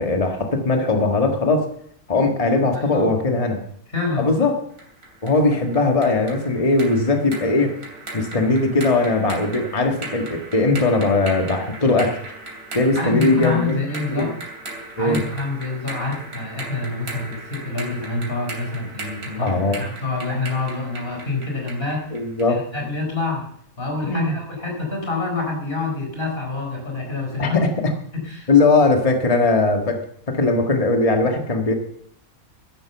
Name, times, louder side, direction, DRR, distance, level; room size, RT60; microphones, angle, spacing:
voice 1, 0.0-1.7 2.1-3.6 4.2-4.6 5.2-7.7 8.1-12.2 12.7-13.7 14.2-14.3 15.0-15.2 19.4-19.8 22.1-22.6 24.0-24.3 27.4-27.7 28.5-30.0 30.3-31.7, left 3 dB, 25° left, 4 dB, 1.6 m, -19 dB
voice 2, 3.9-4.5 12.9-14.3 15.0-22.0 22.7-23.4 23.8-27.6 28.1-28.5, left 3 dB, 40° left, 1 dB, 4.7 m, -27 dB
sound 1, 4.8-22.6, right 2 dB, 85° right, 3.6 m, -37 dB
13.0 x 11.0 x 6.9 m, 0.67 s
omnidirectional pair, 1.6 m